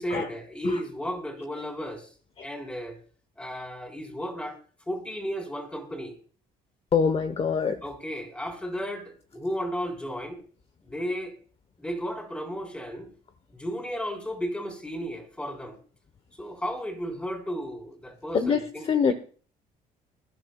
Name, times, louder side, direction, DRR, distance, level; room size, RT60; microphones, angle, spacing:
voice 1, 0.0-2.1 2.4-3.0 3.4-4.6 4.9-6.2 7.8-10.4 10.9-11.4 11.8-13.1 13.5-15.8 16.3-19.1, equal, 5° left, 4 dB, 3.7 m, -34 dB
voice 2, 6.9-7.8 18.3-18.6 18.9-19.1, left 6 dB, 35° left, 9 dB, 0.9 m, -23 dB
22.0 x 11.0 x 2.2 m, 0.41 s
cardioid pair, 110°, 17 cm